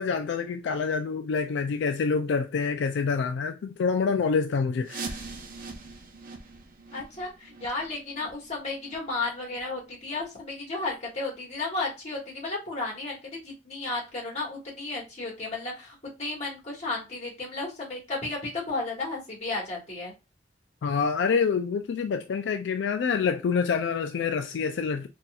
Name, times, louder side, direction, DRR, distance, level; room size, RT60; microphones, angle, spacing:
voice 1, 0.0-5.2 20.8-25.1, left 5 dB, 85° left, 0.3 m, -27 dB
sound 1, 4.8-10.4 10.8-10.9 11.4-11.5 12.1-12.2 12.8-12.9, right 3 dB, 50° right, 0.7 m, -43 dB
voice 2, 6.9-20.1, left 3 dB, 40° left, 1.6 m, -33 dB
4.1 x 2.5 x 2.3 m
head